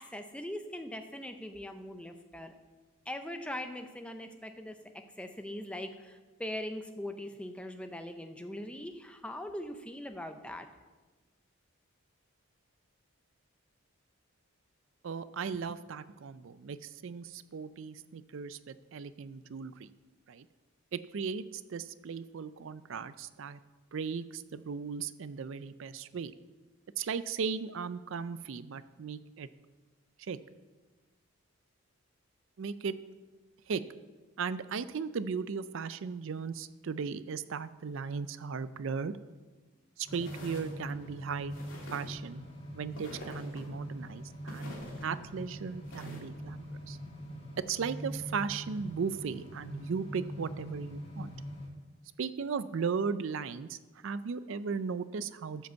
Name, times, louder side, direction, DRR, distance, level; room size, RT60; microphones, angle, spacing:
voice 1, 0.0-2.6 3.1-10.7, left 1 dB, 5° left, 6 dB, 0.6 m, -41 dB
voice 2, 15.0-19.9 20.3-20.5 20.9-23.6 23.9-26.3 27.0-29.5 30.2-30.4 32.6-32.9 33.7-33.8 34.4-39.1 40.0-41.5 41.9-42.4 42.7-44.7 45.0-47.0 47.6-51.3 52.2-53.8 54.0-55.7, right 5 dB, 60° right, 14 dB, 0.4 m, -36 dB
sound 1, 40.0-51.7, equal, 25° left, 1.9 m, -43 dB
sound 2, 40.1-40.7 41.5-42.2 42.9-43.7 44.5-45.1 45.8-46.2, left 1 dB, 65° left, 2.5 m, -46 dB
13.5 x 5.2 x 6.9 m, 1.3 s
head